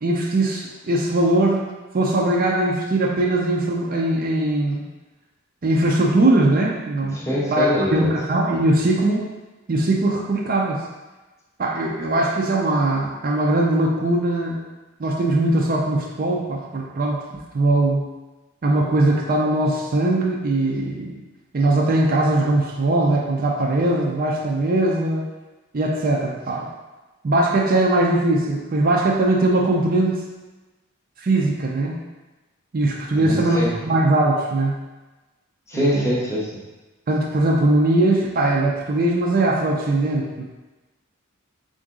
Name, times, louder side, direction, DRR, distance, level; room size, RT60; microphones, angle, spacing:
voice 1, 0.0-1.7 1.9-4.8 5.6-9.2 9.7-10.8 11.6-14.6 15.0-17.2 17.5-18.1 18.6-21.2 21.5-25.2 25.7-26.7 27.2-30.1 31.2-32.0 32.7-33.6 33.8-34.8 35.7-36.1 37.1-40.4, right 2 dB, 45° right, -2 dB, 0.4 m, -20 dB
voice 2, 7.1-8.1 33.2-33.7 35.7-36.6, left 1 dB, 15° left, -6 dB, 0.6 m, -24 dB
3.8 x 2.6 x 3.6 m, 1.2 s
head